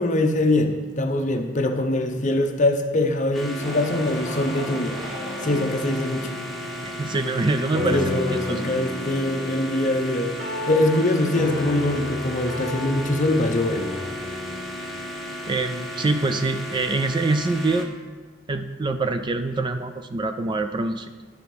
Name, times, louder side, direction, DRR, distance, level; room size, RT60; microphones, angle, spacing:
voice 1, 0.0-5.0 5.4-6.3 7.9-10.3 10.7-13.8, left 1 dB, 40° left, 5 dB, 0.7 m, -23 dB
sound 1, 3.3-17.9, equal, ahead, 1.0 m, -35 dB
sound 2, 3.6-10.6, equal, 70° right, 2.2 m, -38 dB
voice 2, 6.8-8.7 15.5-17.9 18.5-21.2, right 3 dB, 25° right, 9 dB, 0.4 m, -25 dB
sound 3, 7.7-16.5, left 2 dB, 40° right, 1.8 m, -33 dB
11.0 x 4.8 x 5.3 m, 1.4 s
head